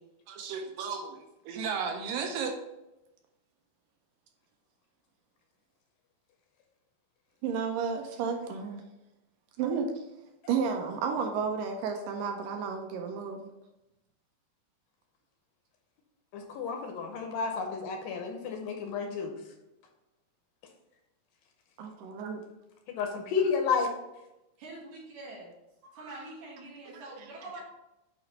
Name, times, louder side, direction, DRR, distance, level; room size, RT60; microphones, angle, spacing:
voice 1, 0.3-1.2 1.5-2.6 7.4-8.8 9.6-10.0 10.5-13.5 21.8-22.4 25.8-26.2 26.9-27.3, right 6 dB, 80° right, 4 dB, 2.2 m, -33 dB
voice 2, 16.3-19.3 22.9-23.9, left 5 dB, 80° left, 3 dB, 2.3 m, -31 dB
voice 3, 24.6-25.5 25.9-27.6, right 2 dB, 60° right, -3 dB, 2.6 m, -45 dB
8.9 x 3.0 x 4.0 m, 0.94 s
omnidirectional pair, 4.1 m